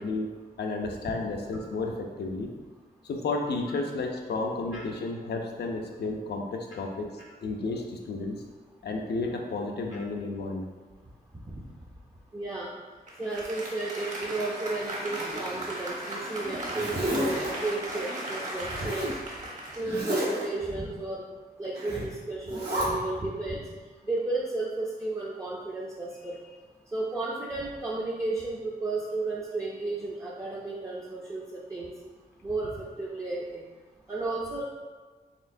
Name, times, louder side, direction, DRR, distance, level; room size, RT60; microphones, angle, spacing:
voice 1, 0.0-2.5 3.1-7.1 7.4-8.4 8.8-10.7, left 3 dB, 80° left, 2 dB, 0.5 m, -32 dB
voice 2, 12.3-12.7 13.2-19.1 19.8-21.2 21.6-23.6 24.1-26.4 26.9-31.9 32.4-33.6 34.1-34.6, right 2 dB, 20° right, -5 dB, 0.4 m, -33 dB
Applause, 13.1-20.7, right 1 dB, 45° right, 0.9 m, -37 dB
Zipper (clothing), 15.0-15.9 16.4-17.5 18.8-19.2 19.8-20.4 21.7-22.0 22.4-22.8, right 1 dB, 75° right, 1.3 m, -32 dB
4.2 x 3.6 x 2.6 m, 1.3 s
wide cardioid pair, 150°, 17 cm